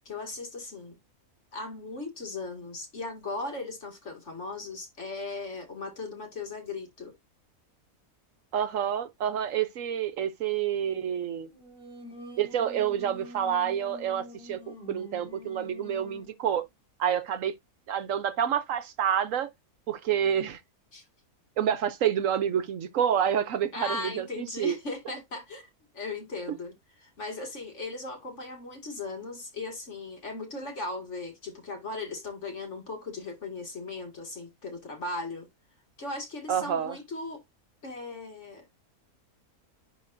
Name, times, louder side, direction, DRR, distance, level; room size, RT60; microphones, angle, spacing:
voice 1, 0.1-1.0 1.5-7.1 20.9-21.0 23.7-26.7 27.0-35.5 36.0-37.4 37.8-38.7, left 3 dB, 50° left, 2.3 m, -38 dB
voice 2, 8.5-11.5 12.4-16.6 17.0-17.5 17.9-19.5 19.9-20.6 21.6-24.7 36.5-37.0, right 9 dB, 65° right, 1.0 m, -28 dB
Singing, 11.5-16.4, left 1 dB, 5° right, 4.4 m, -46 dB
10.5 x 3.7 x 2.6 m
omnidirectional pair, 1.5 m